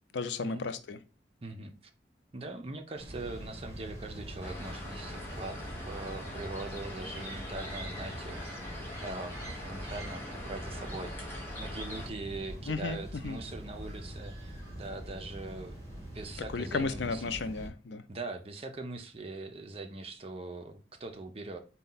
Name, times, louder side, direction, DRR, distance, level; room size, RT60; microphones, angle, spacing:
voice 1, 0.1-1.0 12.7-13.4 16.5-18.0, left 4 dB, 90° left, 11 dB, 0.5 m, -34 dB
voice 2, 1.4-1.7 2.3-8.6 9.0-9.4 9.6-11.2 11.6-15.7 16.1-17.3 18.1-21.6, right 2 dB, 35° right, 5 dB, 0.6 m, -41 dB
sound 1, 3.0-17.7, right 1 dB, 15° right, 1.5 m, -43 dB
sound 2, 4.4-12.1, left 1 dB, 15° left, 1.0 m, -43 dB
4.2 x 2.3 x 3.9 m, 0.34 s
head